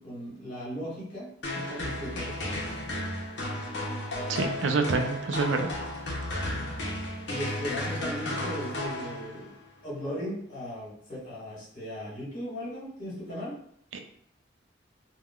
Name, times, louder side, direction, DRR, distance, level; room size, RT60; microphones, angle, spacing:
voice 1, 0.0-2.6 7.3-9.5 9.8-13.6, equal, 45° left, -7 dB, 1.4 m, -37 dB
sound 1, 1.4-9.6, left 1 dB, 65° left, 0.6 m, -34 dB
voice 2, 4.3-5.7 13.9-14.0, right 4 dB, 85° right, 5 dB, 0.4 m, -27 dB
3.5 x 2.2 x 2.3 m, 0.67 s
head